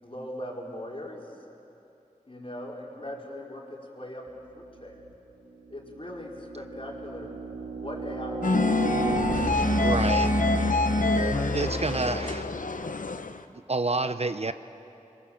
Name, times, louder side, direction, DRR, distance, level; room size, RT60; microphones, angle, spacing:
voice 1, 0.0-1.2 2.3-4.3 4.5-5.0 5.7-7.3 7.8-10.0 10.8-12.2, left 1 dB, 45° left, -2 dB, 4.4 m, -40 dB
sound 1, 4.8-5.1 5.7-12.6, right 2 dB, 85° right, 2.1 m, -31 dB
sound 2, 8.4-13.4, left 3 dB, 80° left, 0.8 m, -27 dB
voice 2, 9.8-10.3 11.5-12.5 13.7-14.5, right 3 dB, 50° right, 11 dB, 0.7 m, -28 dB
25.5 x 22.5 x 7.1 m, 2.8 s
wide cardioid pair, 50°, 13 cm